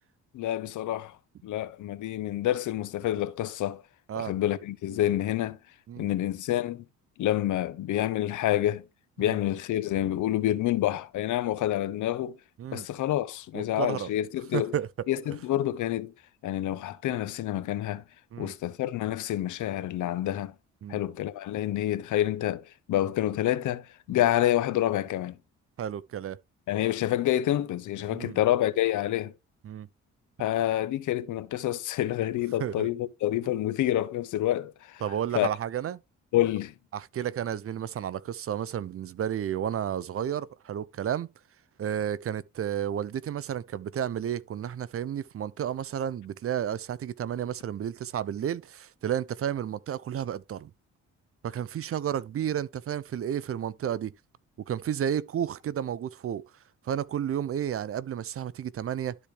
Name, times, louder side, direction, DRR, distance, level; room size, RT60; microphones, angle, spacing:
voice 1, 0.3-1.2 1.4-3.8 4.2-5.6 6.0-6.8 7.2-8.8 9.2-12.4 12.7-14.7 15.1-16.1 16.4-18.0 18.4-20.5 20.9-25.4 26.7-29.3 30.4-35.0 35.3-35.5 36.3-36.7, left 13 dB, 80° left, 0.9 m, -28 dB
voice 2, 13.5-14.1 14.5-14.9 18.3-18.5 20.8-21.0 24.1-24.2 25.8-26.4 28.1-28.4 29.6-29.9 32.6-32.9 35.0-36.0 36.9-41.3 41.8-50.7 51.4-54.1 54.7-56.4 56.9-59.2, right 9 dB, 50° right, 0.6 m, -32 dB
12.0 x 4.3 x 3.3 m
cardioid pair, 90°, 30 cm